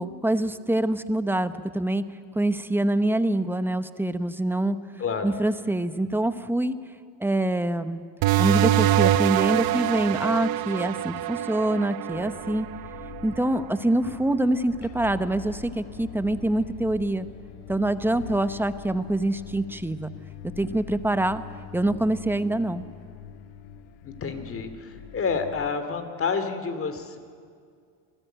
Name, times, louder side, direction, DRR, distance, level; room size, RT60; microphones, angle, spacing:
voice 1, 0.0-2.0 2.3-4.8 5.2-6.8 7.2-8.0 8.4-12.7 13.2-17.3 17.7-20.1 20.6-21.4 21.7-22.9, right 1 dB, 5° right, 12 dB, 0.9 m, -25 dB
voice 2, 5.0-5.3 24.0-27.2, left 5 dB, 30° left, 9 dB, 2.7 m, -29 dB
sound 1, 8.2-13.4, right 12 dB, 50° right, 1.0 m, -24 dB
sound 2, 12.1-25.7, left 10 dB, 65° left, 1.6 m, -43 dB
27.0 x 19.0 x 9.1 m, 2.2 s
supercardioid pair, 120°, 45 cm